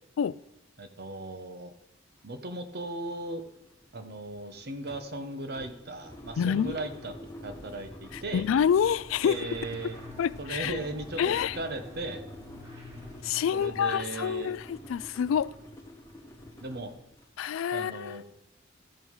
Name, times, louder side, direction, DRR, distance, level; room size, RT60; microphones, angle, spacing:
voice 1, 0.8-1.7 2.2-3.4 3.9-7.1 7.4-8.5 9.2-10.0 10.4-12.2 13.5-14.5 16.6-16.9 17.7-18.2, right 2 dB, 55° right, 0.9 m, -37 dB
sound 1, 2.2-2.3 2.6-17.4, left 1 dB, 15° left, 1.3 m, -47 dB
voice 2, 6.4-6.8 8.1-9.4 10.2-10.8 11.2-11.6 13.2-15.5 17.4-18.2, left 8 dB, 85° left, 0.3 m, -27 dB
sound 2, 8.6-14.1, left 2 dB, 25° right, 2.7 m, -49 dB
13.5 x 5.6 x 4.7 m
head